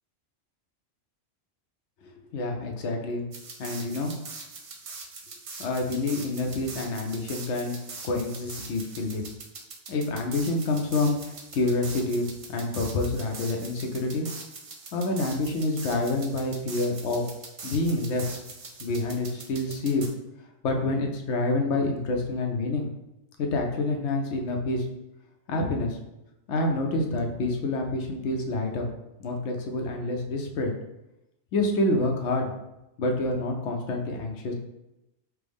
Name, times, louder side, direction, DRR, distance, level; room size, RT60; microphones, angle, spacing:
voice 1, 2.3-3.2 3.6-4.1 5.6-7.7 8.0-9.2 9.9-14.3 14.9-17.2 17.6-18.2 18.8-20.0 20.6-22.9 23.4-24.8 25.5-26.0 26.5-28.9 29.2-30.7 31.5-32.5 33.0-34.5, left 2 dB, 80° left, 2 dB, 0.9 m, -27 dB
sound 1, 3.3-20.1, right 4 dB, 60° right, 0.3 m, -42 dB
4.5 x 2.0 x 3.4 m, 0.93 s
omnidirectional pair, 1.2 m